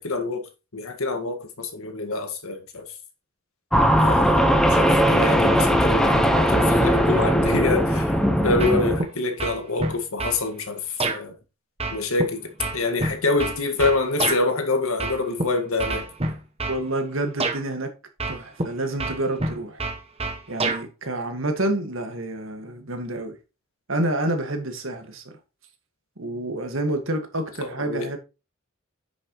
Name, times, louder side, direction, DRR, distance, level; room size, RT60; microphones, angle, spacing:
voice 1, 0.0-2.9 4.0-8.1 8.4-11.4 11.9-16.1 27.6-28.1, left 3 dB, 85° left, 1.8 m, -26 dB
sound 1, 3.7-9.0, equal, 5° left, 1.0 m, -19 dB
sound 2, 8.6-9.1 9.4-10.4 11.0-11.2 11.8-14.4 15.0-15.4 15.8-16.8 17.4-17.6 18.2-18.7 19.0-20.8, right 2 dB, 30° right, 1.1 m, -27 dB
voice 2, 16.6-17.9 18.3-19.9 20.5-23.4 23.9-25.4 26.2-28.2, right 1 dB, 65° right, 1.9 m, -28 dB
9.3 x 6.8 x 3.1 m
head